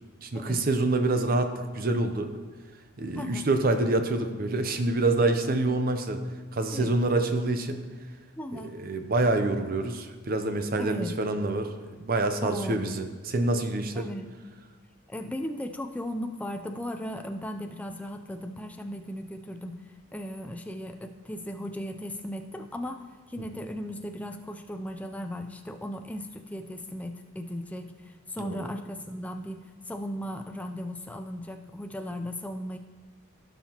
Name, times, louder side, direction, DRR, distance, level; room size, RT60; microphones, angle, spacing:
voice 1, 0.2-2.3 3.0-6.2 6.5-7.9 8.5-11.7 12.0-14.1 28.4-28.7, right 2 dB, 40° right, 7 dB, 0.6 m, -26 dB
voice 2, 3.2-3.5 6.7-7.0 8.4-8.7 10.8-11.1 12.4-12.9 13.9-14.3 15.1-19.7 20.1-32.8, equal, 5° left, 5 dB, 0.4 m, -37 dB
16.0 x 5.7 x 2.9 m, 1.4 s
head